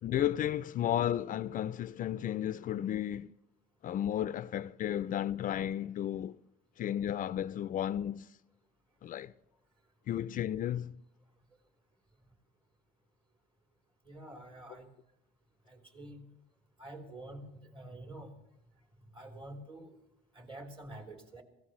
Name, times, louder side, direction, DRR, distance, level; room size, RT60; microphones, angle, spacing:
voice 1, 0.0-3.3 3.8-6.4 6.8-8.3 9.0-9.3 10.1-10.9, left 11 dB, 50° left, 0.4 m, -33 dB
voice 2, 14.0-14.9 15.7-16.2 16.8-18.4 19.0-20.0 20.3-21.4, right 1 dB, 30° right, 3.6 m, -48 dB
25.5 x 17.0 x 3.2 m
cardioid pair, 110°, 17 cm